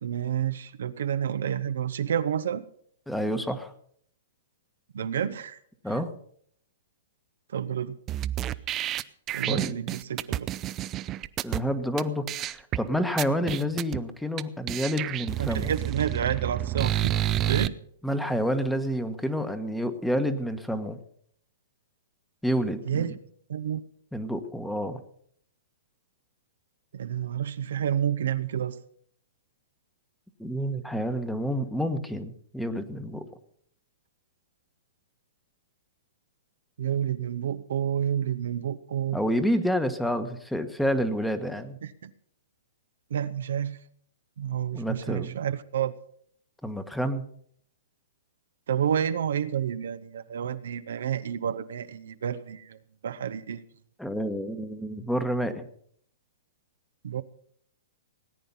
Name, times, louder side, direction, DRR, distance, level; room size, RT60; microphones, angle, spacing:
voice 1, 0.0-2.6 4.9-5.6 7.5-8.0 9.3-10.5 15.4-17.7 22.9-23.1 23.5-23.8 26.9-28.8 36.8-39.2 41.8-42.1 43.1-43.8 44.4-45.9 48.7-53.6 57.0-57.2, right 9 dB, 75° right, 11 dB, 0.8 m, -29 dB
voice 2, 3.1-3.7 5.8-6.1 9.5-9.7 11.4-15.7 18.0-21.0 22.4-23.1 24.1-25.0 30.4-33.2 39.1-41.8 44.7-45.4 46.6-47.2 54.0-55.7, equal, 5° left, 9 dB, 1.3 m, -29 dB
sound 1, 8.1-11.6 12.0-12.1 12.3-12.8 13.2-14.0 14.4-14.5 14.7-17.7, right 12 dB, 30° right, 0.5 m, -29 dB
18.5 x 9.3 x 5.6 m, 0.63 s
hypercardioid pair, 125°, 0 cm